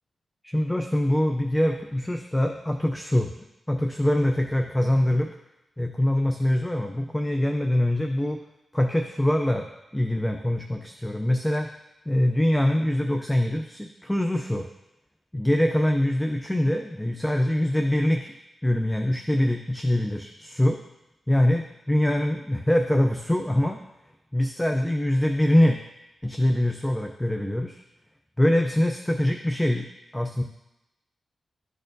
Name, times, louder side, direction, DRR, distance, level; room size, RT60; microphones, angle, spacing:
voice 1, 0.4-3.3 3.7-5.3 5.8-8.4 8.7-9.7 9.9-11.7 12.1-14.7 15.3-18.3 18.6-20.8 21.3-23.8 24.3-25.8 26.2-27.8 28.4-29.9 30.1-30.4, left 1 dB, 10° left, 4 dB, 0.4 m, -23 dB
12.0 x 4.3 x 2.6 m, 0.94 s
wide cardioid pair, 105°, 0 cm